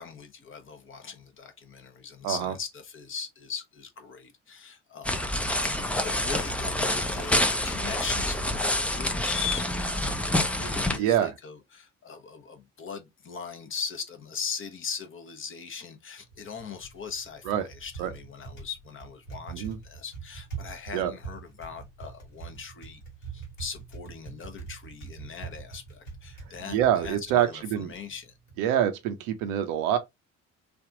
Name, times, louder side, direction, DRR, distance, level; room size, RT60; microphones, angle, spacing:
voice 1, 0.0-5.8 6.0-23.0 23.3-28.3, left 6 dB, 35° left, 0.9 m, -39 dB
voice 2, 2.2-2.5 11.0-11.3 17.5-17.6 18.0-18.1 19.5-19.8 20.9-21.1 26.7-27.9 28.6-30.0, right 10 dB, 60° right, 0.7 m, -25 dB
sound 1, 5.0-11.0, left 1 dB, 5° left, 0.5 m, -27 dB
Typing, 16.2-28.6, right 5 dB, 80° left, 1.3 m, -44 dB
3.5 x 2.4 x 3.6 m
figure-of-eight pair, 50°, 38 cm